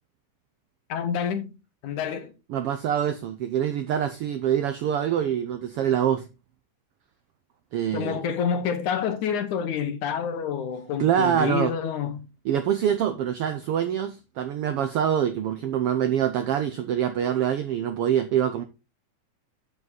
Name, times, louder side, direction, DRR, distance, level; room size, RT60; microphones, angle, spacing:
voice 1, 0.9-1.5 1.8-2.3 7.9-12.3, left 7 dB, 75° left, 2.6 m, -28 dB
voice 2, 2.5-6.2 7.7-8.2 11.0-11.7 12.4-18.6, right 9 dB, 80° right, 1.3 m, -25 dB
7.9 x 7.5 x 4.0 m
omnidirectional pair, 3.5 m